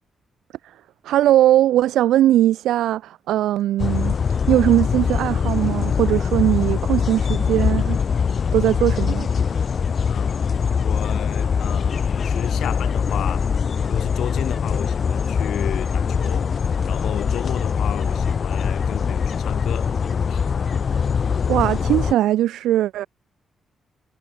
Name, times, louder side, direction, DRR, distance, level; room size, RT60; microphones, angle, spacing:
voice 1, 1.0-4.2 4.5-8.0 8.5-9.3 21.5-23.1, right 13 dB, 90° right, 0.4 m, -19 dB
sound 1, 3.8-22.1, left 6 dB, 50° left, 0.5 m, -22 dB
voice 2, 10.1-10.4 10.8-13.5 13.9-16.5 16.8-20.0 20.3-20.5, left 10 dB, 80° left, 2.3 m, -32 dB
cardioid pair, 75°, 0 cm